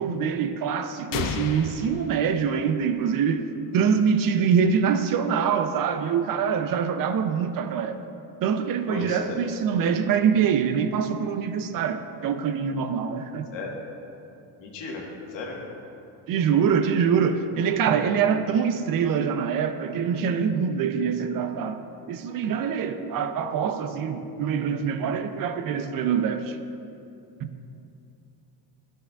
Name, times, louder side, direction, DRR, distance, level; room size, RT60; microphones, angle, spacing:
voice 1, 0.0-3.5 3.7-8.0 8.4-13.5 16.3-21.8 22.1-26.6 27.4-27.5, right 7 dB, 50° right, 9 dB, 0.4 m, -24 dB
sound 1, 1.1-3.0, left 7 dB, 50° left, 0.4 m, -33 dB
voice 2, 8.9-9.4 9.7-10.1 13.5-13.7 14.6-15.0 15.3-15.6, left 3 dB, 75° left, -1 dB, 1.5 m, -35 dB
11.5 x 6.2 x 2.3 m, 2.7 s
cardioid pair, 125°, 44 cm